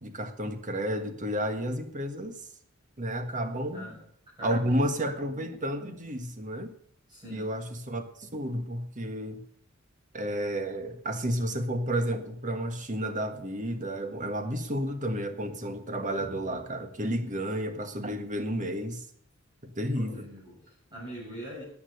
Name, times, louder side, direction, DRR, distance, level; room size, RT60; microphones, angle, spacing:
voice 1, 0.0-2.4 3.0-3.9 4.4-6.7 7.3-9.4 10.1-19.0 19.6-20.2, equal, 40° right, 7 dB, 1.5 m, -31 dB
voice 2, 4.4-5.2 7.1-7.5 19.9-21.6, equal, 20° right, -6 dB, 7.3 m, -43 dB
13.5 x 8.9 x 6.7 m, 0.66 s
head